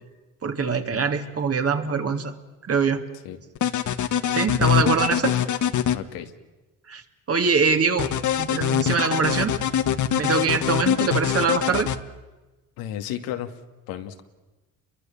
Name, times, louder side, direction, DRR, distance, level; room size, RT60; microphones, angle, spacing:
voice 1, 0.4-2.3 2.6-3.0 4.3-5.3 6.9-7.0 7.3-8.1 8.4-9.6 10.2-11.9, right 5 dB, 40° right, 6 dB, 2.9 m, -23 dB
sound 1, 3.5-6.0 8.0-12.0, left 10 dB, 55° left, 1.5 m, -23 dB
voice 2, 5.9-6.3 12.8-13.5 13.9-14.2, left 11 dB, 85° left, 6 dB, 2.4 m, -33 dB
29.5 x 23.0 x 7.2 m, 1.1 s
supercardioid pair, 75°, 35 cm